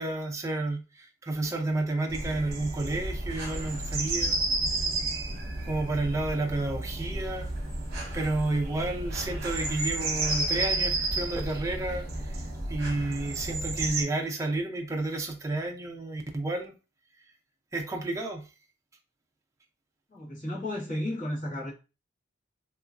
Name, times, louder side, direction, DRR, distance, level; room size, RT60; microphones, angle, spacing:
voice 1, 0.0-4.4 5.7-7.5 8.1-12.4 12.7-16.7 17.7-18.5, right 2 dB, 15° right, 0.4 m, -31 dB
sound 1, 2.1-14.0, right 2 dB, 50° right, 0.9 m, -32 dB
voice 2, 20.1-21.7, left 1 dB, 40° left, 1.5 m, -33 dB
2.9 x 2.3 x 2.4 m
head